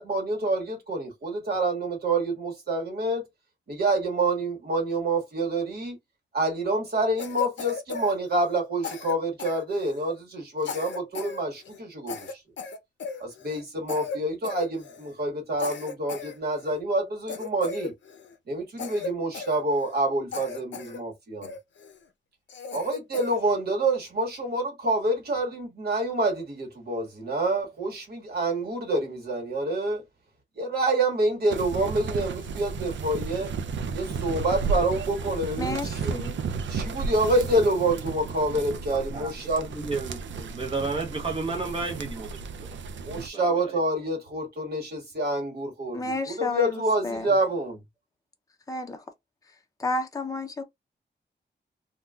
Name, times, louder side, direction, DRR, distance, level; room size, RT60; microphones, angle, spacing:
voice 1, 0.0-3.2 3.7-6.0 6.3-12.4 13.2-17.9 18.5-21.5 22.7-30.0 30.6-33.5 33.9-36.1 36.7-39.7 43.0-47.8, right 2 dB, 60° right, 1.2 m, -27 dB
Cough, 7.2-8.6 8.8-10.1 10.6-11.4 11.6-11.8 12.1-13.6 13.9-14.2 14.4-15.1 15.6-16.8 17.3-18.3 18.8-20.0 20.3-21.0 21.4-22.0 22.5-23.4, left 4 dB, 75° left, 0.6 m, -37 dB
sound 1, 31.5-43.3, right 5 dB, 85° right, 0.4 m, -33 dB
voice 2, 35.6-36.4 45.9-47.3 48.7-49.0 49.5-50.6, left 2 dB, 20° left, 0.5 m, -32 dB
voice 3, 38.9-39.3 39.7-42.3 43.1-43.8 47.3-47.4, right 3 dB, 30° right, 0.9 m, -32 dB
3.7 x 2.2 x 2.3 m
wide cardioid pair, 165°, 19 cm